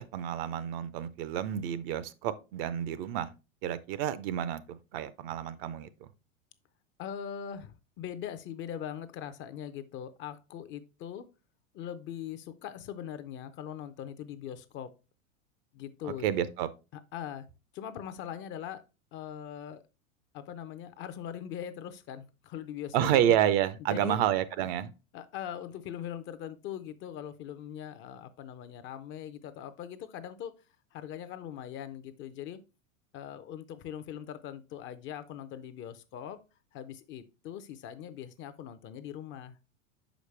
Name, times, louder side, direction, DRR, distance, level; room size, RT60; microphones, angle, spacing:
voice 1, 0.0-3.3 3.6-6.1 16.2-16.7 22.9-24.9, right 11 dB, 45° right, 0.6 m, -29 dB
voice 2, 7.0-11.3 11.7-14.9 15.7-16.3 16.9-17.5 17.7-18.8 19.1-19.8 20.3-23.4 23.9-24.2 24.6-24.7 25.1-30.5 30.9-32.6 33.1-36.4 36.7-39.6, left 9 dB, 30° left, 0.5 m, -41 dB
6.4 x 5.1 x 3.2 m
hypercardioid pair, 95°, 39 cm